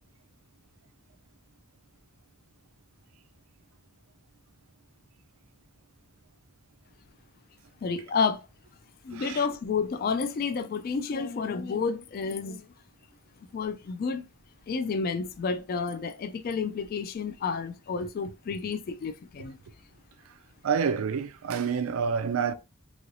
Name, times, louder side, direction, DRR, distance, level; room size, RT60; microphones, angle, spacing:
voice 1, 7.8-8.4 9.0-12.7 13.5-14.2 14.7-19.6, left 5 dB, 45° left, 0.3 m, -30 dB
voice 2, 9.1-9.4 20.6-22.5, right 6 dB, 75° right, 0.4 m, -28 dB
3.1 x 2.8 x 2.6 m
head